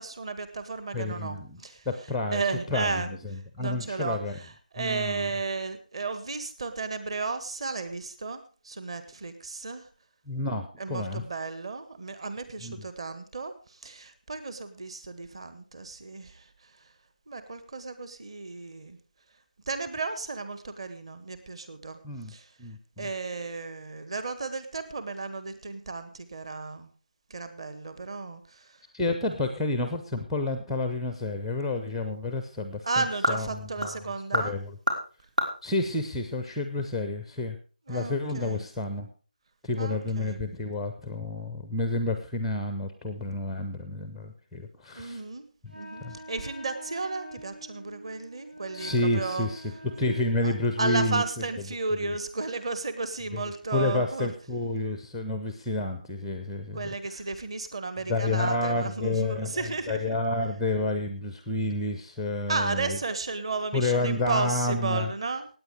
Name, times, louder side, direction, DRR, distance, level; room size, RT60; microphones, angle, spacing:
voice 1, 0.0-1.9 2.3-3.1 3.6-9.9 10.8-16.5 17.3-19.0 19.7-22.0 22.3-22.5 23.0-26.9 27.3-28.8 32.8-34.6 37.9-38.7 39.8-40.4 44.9-45.5 45.7-49.5 50.4-54.3 56.7-60.1 62.5-65.5, right 3 dB, 35° right, 11 dB, 1.7 m, -34 dB
voice 2, 0.9-1.6 1.9-2.4 2.7-4.4 4.8-5.3 10.3-11.2 12.6-12.8 22.0-22.3 22.6-23.1 28.9-34.0 34.3-34.8 35.6-37.6 37.9-39.1 39.6-45.2 46.0-46.2 48.7-51.2 52.0-52.2 53.3-53.4 53.7-57.2 58.1-63.0 63.7-65.1, left 2 dB, ahead, 7 dB, 0.5 m, -30 dB
sound 1, 31.1-36.9, right 1 dB, 65° right, 3.9 m, -33 dB
Wind instrument woodwind instrument, 45.7-51.2, right 1 dB, 90° right, 5.3 m, -45 dB
17.0 x 9.2 x 4.9 m, 0.37 s
figure-of-eight pair, 165°, 5 cm